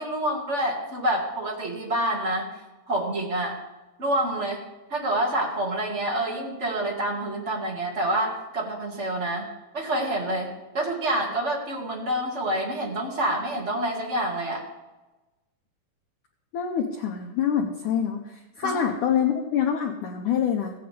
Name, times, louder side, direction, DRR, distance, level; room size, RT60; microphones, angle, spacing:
voice 1, 0.0-2.5 2.9-3.6 4.0-9.5 9.7-14.6 18.6-18.8, right 1 dB, 35° right, -1 dB, 1.1 m, -27 dB
voice 2, 16.5-20.7, left 8 dB, 90° left, 1 dB, 1.8 m, -26 dB
16.5 x 9.1 x 3.4 m, 1.1 s
omnidirectional pair, 4.8 m